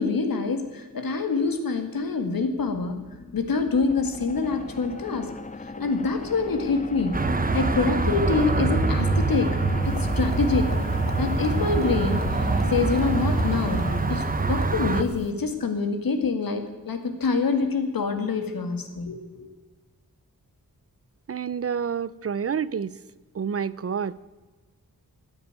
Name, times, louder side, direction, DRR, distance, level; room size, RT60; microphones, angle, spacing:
voice 1, 0.0-3.0 3.3-5.3 5.6-9.6 9.9-10.8 11.2-12.2 12.7-19.5, left 4 dB, 85° left, 7 dB, 2.1 m, -26 dB
sound 1, 2.1-15.3, left 3 dB, 20° left, 0.6 m, -37 dB
sound 2, 7.1-15.0, right 3 dB, 25° right, 0.9 m, -25 dB
sound 3, 9.8-15.3, left 6 dB, 55° left, 1.0 m, -42 dB
voice 2, 21.3-22.9 23.3-24.2, right 7 dB, 45° right, 19 dB, 0.5 m, -28 dB
16.0 x 9.8 x 9.0 m, 1.3 s
wide cardioid pair, 140°, 34 cm